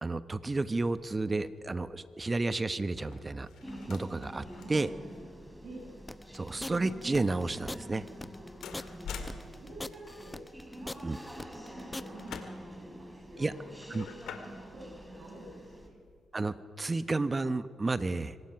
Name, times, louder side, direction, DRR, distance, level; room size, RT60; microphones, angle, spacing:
voice 1, 0.0-3.5 3.9-4.9 6.3-8.0 11.0-11.2 13.4-13.5 13.9-14.0 16.3-18.4, right 3 dB, 30° right, 13 dB, 1.1 m, -31 dB
sound 1, 0.8-16.3, left 5 dB, 85° left, 2.2 m, -50 dB
sound 2, 3.6-15.9, equal, 10° right, 4.0 m, -47 dB
voice 2, 4.6-5.0 5.6-5.9 9.6-10.4 10.7-12.5 12.9-14.1 14.4-16.0, right 1 dB, 65° right, -4 dB, 7.2 m, -49 dB
sound 3, 6.1-12.4, left 2 dB, 20° left, 0.8 m, -42 dB
25.0 x 19.0 x 6.0 m, 2.1 s
supercardioid pair, 55°, 0 cm